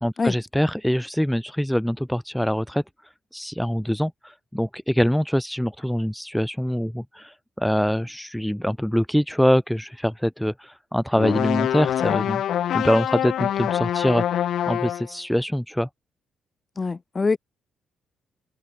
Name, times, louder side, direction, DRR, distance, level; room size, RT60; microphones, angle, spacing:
voice 1, 0.0-2.8 3.3-12.4 12.7-15.9, equal, ahead, 0.5 m, -24 dB
sound 1, 11.2-15.1, left 10 dB, 70° left, 1.4 m, -25 dB
voice 2, 16.8-17.4, left 4 dB, 30° left, 1.4 m, -24 dB
cardioid pair, 90°, 0 cm